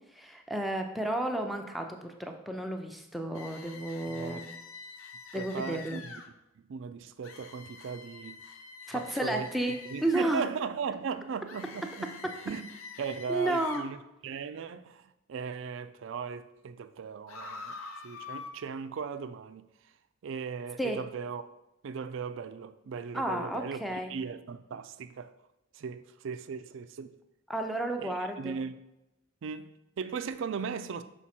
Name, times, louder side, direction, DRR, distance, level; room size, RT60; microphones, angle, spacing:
voice 1, 0.1-4.5 5.3-6.1 8.9-10.4 13.3-13.8 20.8-21.0 23.1-24.1 27.5-28.6, right 1 dB, ahead, 0.4 m, -32 dB
sound 1, 3.3-6.3 7.2-10.3 11.5-13.9 17.3-18.5, left 5 dB, 75° left, 0.7 m, -46 dB
voice 2, 4.1-4.5 5.3-6.1 6.6-8.4 8.9-9.5 9.9-12.7 13.0-14.0 14.2-17.8 18.0-19.7 20.2-21.4 21.8-25.3 25.7-27.1 28.0-28.8 29.4-31.0, right 6 dB, 60° right, 0.3 m, -38 dB
6.1 x 4.0 x 4.3 m
head